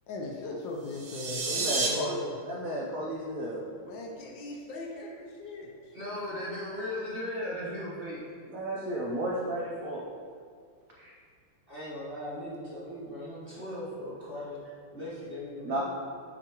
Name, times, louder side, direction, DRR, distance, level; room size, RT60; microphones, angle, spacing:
voice 1, 0.1-2.4 3.8-6.0, left 2 dB, 70° left, 0 dB, 1.2 m, -38 dB
sound 1, 0.8-1.9, right 4 dB, 60° right, 1.1 m, -31 dB
voice 2, 1.5-2.2 2.4-3.6 8.5-10.0 11.0-11.1 15.6-15.8, right 1 dB, 80° right, -3 dB, 0.7 m, -33 dB
voice 3, 5.9-8.2 11.7-14.6 14.9-15.8, left 1 dB, 40° right, -9 dB, 0.9 m, -37 dB
6.7 x 4.9 x 2.9 m, 2.1 s
omnidirectional pair, 2.3 m